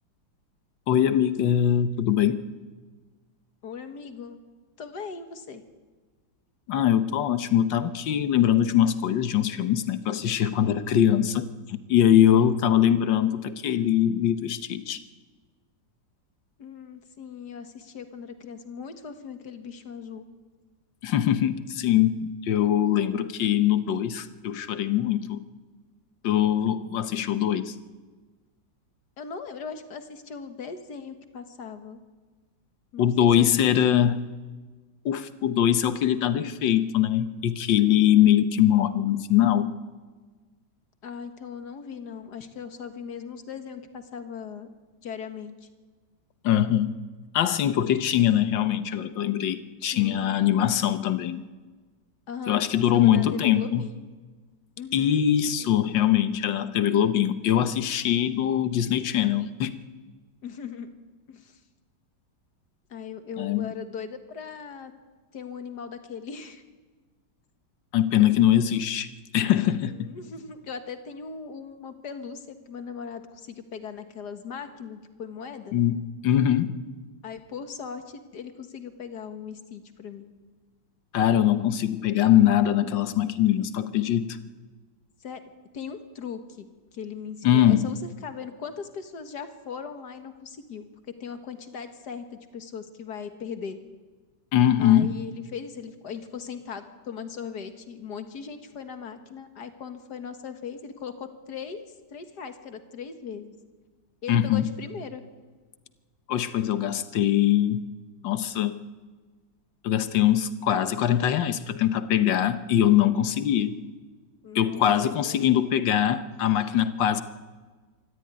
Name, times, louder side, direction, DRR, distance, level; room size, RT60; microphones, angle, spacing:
voice 1, 0.9-2.4 6.7-15.0 21.0-25.5 26.2-27.7 33.0-34.2 35.1-39.7 46.4-46.9 47.3-51.4 52.5-53.9 54.9-59.8 63.4-63.7 67.9-70.1 75.7-76.8 81.1-84.4 87.4-87.9 94.5-95.2 104.3-104.7 106.3-107.9 108.2-108.8 109.8-113.8 114.6-117.2, left 10 dB, 80° left, 12 dB, 1.7 m, -22 dB
voice 2, 3.6-4.4 4.8-5.6 12.3-12.5 16.6-20.3 29.2-32.0 32.9-34.2 41.0-44.7 45.0-45.7 49.8-50.4 52.3-54.1 54.8-55.2 55.6-55.8 60.4-60.9 61.3-61.6 62.9-64.9 65.3-66.6 69.6-75.8 77.2-80.3 85.2-85.4 85.7-88.0 88.2-90.9 91.2-93.8 94.8-101.8 102.1-103.5 104.2-105.2 114.4-115.4, left 6 dB, 60° left, 8 dB, 2.1 m, -39 dB
25.0 x 13.5 x 9.7 m, 1.4 s
omnidirectional pair, 2.0 m